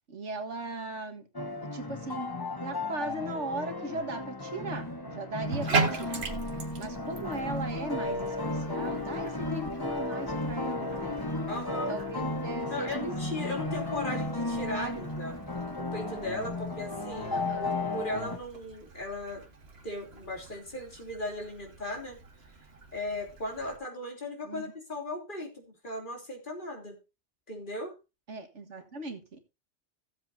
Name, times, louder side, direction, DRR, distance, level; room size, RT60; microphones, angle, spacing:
voice 1, 0.1-1.2 1.6-6.2 6.8-11.2 11.9-13.1 14.7-15.0 17.2-17.8 24.4-24.7 28.3-29.4, right 2 dB, 80° right, 2.1 m, -38 dB
sound 1, 1.3-18.4, left 2 dB, 20° left, 1.2 m, -34 dB
Bathtub (filling or washing), 5.4-23.8, right 4 dB, 60° right, 1.8 m, -39 dB
voice 2, 11.5-12.0 12.7-15.3 15.8-19.5 19.8-22.2 22.9-27.0 27.5-28.0, left 1 dB, 45° left, 3.3 m, -37 dB
16.5 x 7.7 x 2.7 m
omnidirectional pair, 1.2 m